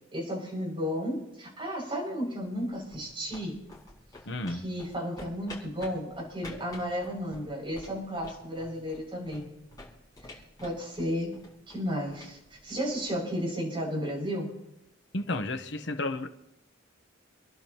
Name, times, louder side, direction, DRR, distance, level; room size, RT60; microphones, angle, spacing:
voice 1, 0.1-3.6 4.5-9.5 10.3-14.6, equal, 25° right, -3 dB, 6.9 m, -33 dB
sound 1, 2.6-13.3, left 2 dB, 20° left, 6.3 m, -50 dB
voice 2, 4.3-4.6 15.1-16.3, left 2 dB, 65° left, 6 dB, 1.1 m, -32 dB
29.0 x 11.5 x 3.1 m, 0.86 s
head